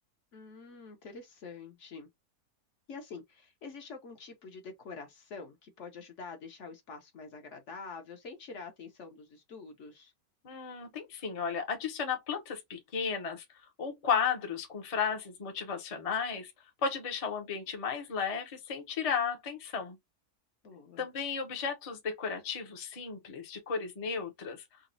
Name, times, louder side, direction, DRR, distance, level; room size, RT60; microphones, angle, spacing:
voice 1, 0.3-2.1 2.9-10.1 20.6-21.1, left 4 dB, 55° left, 1.0 m, -46 dB
voice 2, 10.4-13.4 13.8-16.5 16.8-20.0 21.0-24.6, left 6 dB, 35° left, 0.6 m, -34 dB
4.0 x 2.2 x 2.6 m
omnidirectional pair, 1.6 m